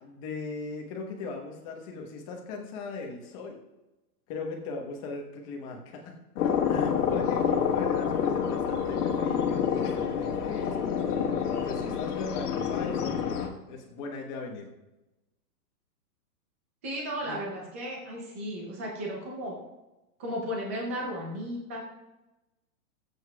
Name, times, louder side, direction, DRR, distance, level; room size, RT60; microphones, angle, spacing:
voice 1, 0.0-3.6 4.3-11.1 11.5-13.2 13.7-14.7 17.2-17.4, left 3 dB, 20° left, 2 dB, 1.0 m, -39 dB
sound 1, 6.4-13.5, left 7 dB, 70° left, 1.6 m, -28 dB
voice 2, 16.8-19.6 20.2-21.9, equal, 10° right, -2 dB, 0.5 m, -35 dB
18.5 x 8.1 x 2.3 m, 1.0 s
hypercardioid pair, 170°, 48 cm